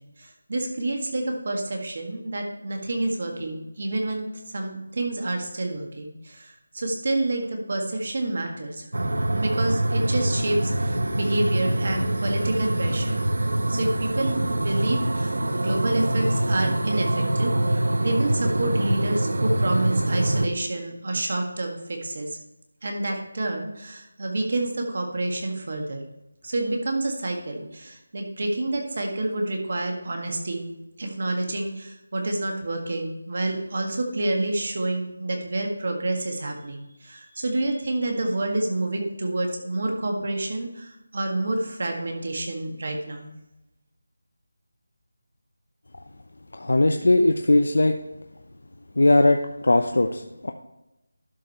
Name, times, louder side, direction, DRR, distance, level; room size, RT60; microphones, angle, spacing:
voice 1, 0.0-4.3 4.5-8.8 9.3-13.3 13.7-22.4 22.8-26.1 26.4-30.7 31.0-43.3, right 2 dB, 40° right, 2 dB, 1.7 m, -28 dB
sound 1, 8.9-20.5, right 1 dB, 85° right, 0.9 m, -24 dB
voice 2, 46.5-48.0 49.0-50.5, left 2 dB, 70° left, 5 dB, 0.7 m, -19 dB
12.0 x 5.2 x 4.2 m, 0.95 s
figure-of-eight pair, 175°, 0 cm